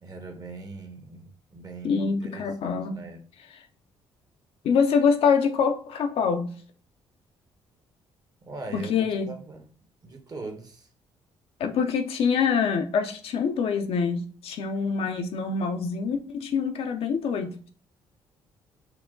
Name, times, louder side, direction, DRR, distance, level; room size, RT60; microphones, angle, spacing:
voice 1, 0.0-3.2 8.4-9.6 10.0-10.9, right 3 dB, 40° right, 1.1 m, -41 dB
voice 2, 1.8-3.0 4.6-6.5 8.7-9.3 11.6-17.5, left 6 dB, 70° left, 0.6 m, -25 dB
4.6 x 2.2 x 3.7 m
supercardioid pair, 70°, 10 cm